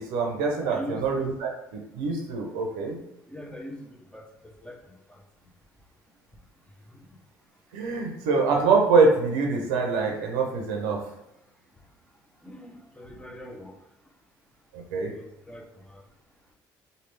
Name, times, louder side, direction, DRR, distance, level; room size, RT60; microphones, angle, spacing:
voice 1, 0.0-3.0 7.7-11.0 14.7-15.1, right 4 dB, 85° right, 1 dB, 0.6 m, -24 dB
voice 2, 0.6-1.0 3.3-4.8 5.1-5.2 6.9-7.0 12.4-13.8 15.1-16.0, equal, 10° left, 1 dB, 0.8 m, -42 dB
3.2 x 2.3 x 3.2 m, 0.85 s
supercardioid pair, 65°, 9 cm